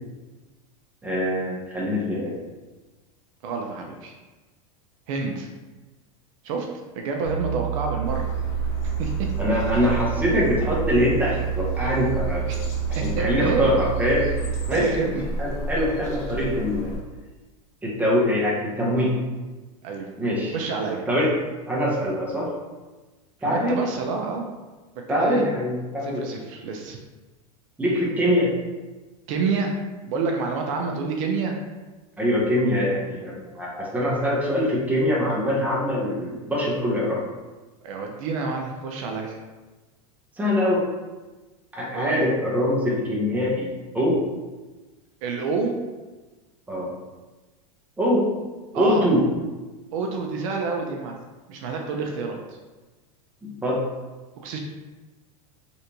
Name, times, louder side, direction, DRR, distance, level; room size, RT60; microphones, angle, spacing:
voice 1, 1.0-2.3 9.4-12.5 12.9-14.2 14.7-15.1 15.4-17.0 17.8-19.1 20.2-20.5 21.1-21.3 21.7-22.5 23.4-23.8 25.1-26.2 27.8-28.5 32.2-37.2 40.4-40.8 41.7-43.7 43.9-44.2 46.7-46.9 48.0-48.2 48.7-49.2 53.4-53.8, equal, 10° right, -5 dB, 0.9 m, -23 dB
voice 2, 3.4-4.1 5.1-5.5 6.4-6.7 6.9-8.2 8.8-9.1 12.5-12.6 13.2-13.7 14.7-15.3 19.8-20.1 20.5-21.0 23.4-24.5 25.1-25.4 26.0-27.0 29.3-29.8 30.0-31.6 37.8-39.4 41.9-42.2 45.2-45.8 48.7-49.0 49.9-51.2 51.5-52.6 54.4-54.6, right 4 dB, 65° right, 2 dB, 0.5 m, -28 dB
sound 1, 7.2-14.7, right 12 dB, 60° left, 1.3 m, -28 dB
sound 2, 8.0-17.0, equal, 40° left, 0.9 m, -33 dB
3.3 x 2.7 x 2.9 m, 1.2 s
supercardioid pair, 120°, 18 cm